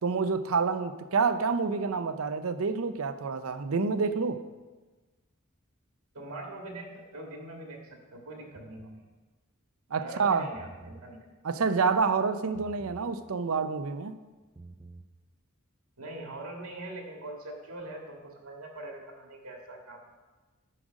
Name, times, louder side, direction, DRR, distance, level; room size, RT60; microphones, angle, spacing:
voice 1, 0.0-4.4 9.9-10.5 11.4-14.1, right 5 dB, 70° right, 11 dB, 0.5 m, -28 dB
voice 2, 6.1-6.9 7.1-9.1 10.0-11.2 16.0-20.0, right 2 dB, 90° right, 1 dB, 1.9 m, -42 dB
sound 1, 8.6-9.0 10.4-11.1 12.5-13.1 14.4-15.1, right 2 dB, 20° right, 0.5 m, -48 dB
9.9 x 5.0 x 6.2 m, 1.3 s
head